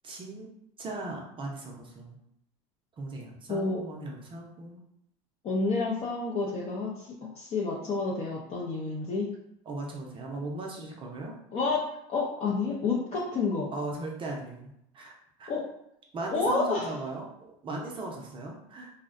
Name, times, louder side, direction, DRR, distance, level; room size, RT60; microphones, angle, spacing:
voice 1, 0.0-0.5 0.8-2.2 3.0-4.8 9.7-11.4 13.7-15.5 16.1-17.3 17.6-18.9, right 2 dB, 30° right, -1 dB, 0.5 m, -38 dB
voice 2, 3.5-3.8 5.4-9.3 11.5-13.7 15.5-15.6 16.3-17.0, left 3 dB, 40° left, -4 dB, 0.5 m, -29 dB
2.6 x 2.1 x 2.5 m, 0.78 s
supercardioid pair, 105°, 16 cm